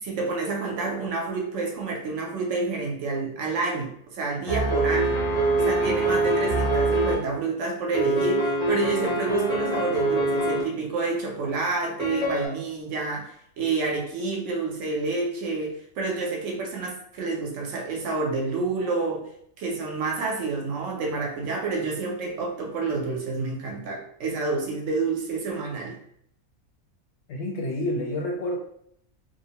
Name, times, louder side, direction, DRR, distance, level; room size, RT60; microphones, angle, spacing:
voice 1, 0.0-5.2 5.6-19.3 19.6-26.0, right 3 dB, 70° right, 0 dB, 0.8 m, -29 dB
sound 1, 4.5-7.1 7.9-10.6 12.0-12.5, right 2 dB, 5° left, 0.3 m, -24 dB
voice 2, 27.3-28.6, left 1 dB, 65° left, -1 dB, 0.7 m, -28 dB
2.6 x 2.0 x 2.8 m, 0.68 s
omnidirectional pair, 1.4 m